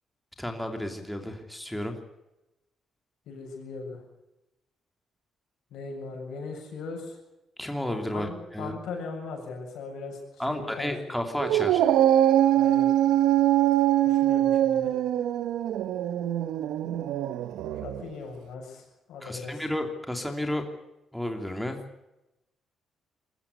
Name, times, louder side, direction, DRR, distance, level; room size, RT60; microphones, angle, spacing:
voice 1, 0.4-2.0 7.6-8.7 10.4-11.8 19.2-20.6 21.1-21.8, left 1 dB, 5° left, 4 dB, 2.9 m, -32 dB
voice 2, 3.3-4.0 5.7-7.2 8.1-11.0 12.6-12.9 14.0-15.0 17.8-19.6, left 4 dB, 80° left, 2 dB, 7.4 m, -39 dB
Dog, 11.4-18.0, right 12 dB, 85° right, 1.0 m, -23 dB
21.5 x 14.0 x 9.6 m, 0.92 s
cardioid pair, 90°, 0 cm